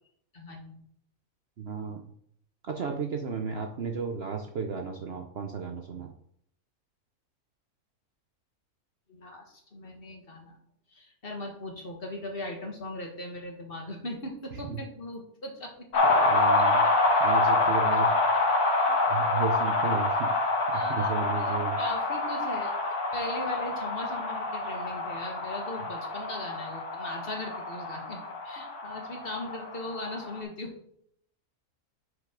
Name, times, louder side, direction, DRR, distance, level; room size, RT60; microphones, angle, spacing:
voice 1, 0.3-0.7 9.1-10.6 10.9-16.0 16.6-16.7 17.9-18.0 18.5-18.6 18.9-19.0 20.7-22.7 23.1-30.9, left 1 dB, 40° left, 2 dB, 1.6 m, -39 dB
voice 2, 1.6-2.0 2.7-6.1 14.7-14.8 16.0-16.8 17.2-18.1 19.1-20.3 20.7-21.8, right 5 dB, 55° right, 3 dB, 0.8 m, -33 dB
sound 1, 15.9-30.4, left 2 dB, 90° left, 1.8 m, -27 dB
6.5 x 5.2 x 5.0 m, 0.68 s
omnidirectional pair, 1.6 m